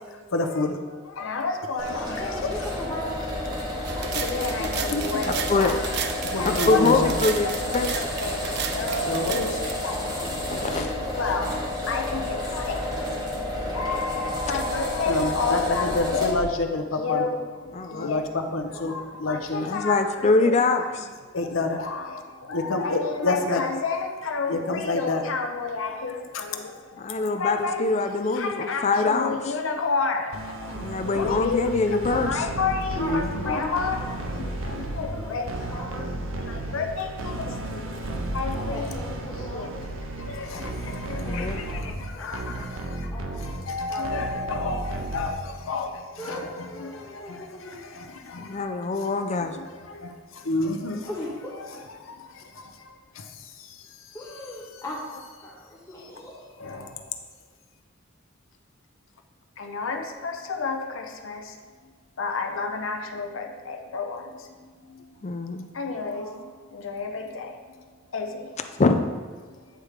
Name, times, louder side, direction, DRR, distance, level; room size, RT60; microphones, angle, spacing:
voice 1, 0.0-2.7 4.0-7.2 7.4-10.2 11.2-11.5 11.9-20.6 20.9-27.9 28.2-34.0 34.3-36.1 36.4-37.9 38.3-38.9 39.4-39.7 40.2-43.1 43.4-48.7 49.0-51.1 51.9-54.2 56.6-57.2 59.6-61.9 62.2-65.3 65.7-68.7 69.5-69.7, left 3 dB, 75° left, 5 dB, 0.7 m, -30 dB
sound 1, 1.8-16.4, left 1 dB, 20° right, 1.3 m, -31 dB
voice 2, 2.2-4.8 8.8-9.1 9.9-11.5 11.8-12.2 12.6-14.3 18.4-19.1 30.6-30.9 32.9-33.1 33.4-34.2 34.8-36.8 37.3-38.3 38.5-39.9 41.2-42.8 43.1-44.8 46.2-47.8 51.1-51.5 54.1-56.5 65.9-66.4, left 1 dB, 15° left, -5 dB, 1.6 m, -40 dB
sound 2, 3.9-9.7, right 7 dB, 55° right, 0.4 m, -34 dB
voice 3, 5.5-5.8 6.4-7.9 10.5-10.9 17.7-18.1 19.6-21.1 27.0-29.4 30.7-32.5 41.2-41.6 48.4-49.6 65.2-65.7 68.8-69.0, left 3 dB, 35° left, 7 dB, 0.4 m, -24 dB
sound 3, 30.3-45.7, right 1 dB, 90° right, 0.7 m, -34 dB
9.0 x 3.2 x 4.9 m, 1.5 s
head